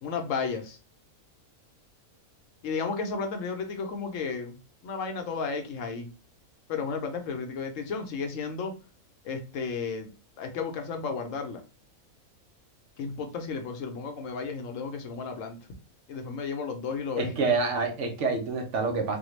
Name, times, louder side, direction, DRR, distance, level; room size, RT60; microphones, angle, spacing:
voice 1, 0.0-0.8 2.6-6.1 6.7-8.7 9.2-10.1 10.4-11.6 13.0-15.6 16.1-17.3, left 5 dB, 70° left, 5 dB, 0.9 m, -33 dB
voice 2, 17.2-19.2, right 4 dB, 65° right, 4 dB, 0.9 m, -27 dB
3.5 x 2.2 x 3.1 m, 0.33 s
omnidirectional pair, 1.5 m